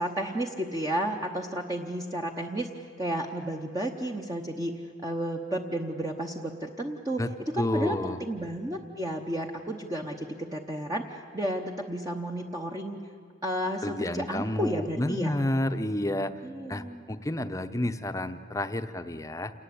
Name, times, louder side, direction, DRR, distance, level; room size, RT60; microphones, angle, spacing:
voice 1, 0.0-7.2 7.5-13.0 13.4-15.3 16.4-17.0, right 1 dB, 20° right, 1 dB, 1.0 m, -32 dB
voice 2, 7.6-8.2 13.8-16.3 16.7-19.5, left 1 dB, 15° left, 10 dB, 0.8 m, -30 dB
28.0 x 19.5 x 8.6 m, 2.1 s
head